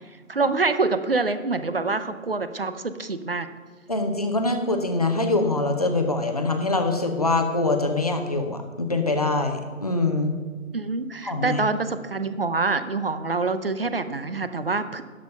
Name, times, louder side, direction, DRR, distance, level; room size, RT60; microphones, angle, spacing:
voice 1, 0.3-3.5 10.7-15.0, right 3 dB, 45° right, 11 dB, 0.6 m, -26 dB
voice 2, 3.9-10.3 11.2-11.6, left 2 dB, 30° left, 5 dB, 0.7 m, -24 dB
12.0 x 6.4 x 5.4 m, 1.5 s
figure-of-eight pair, 160°, 41 cm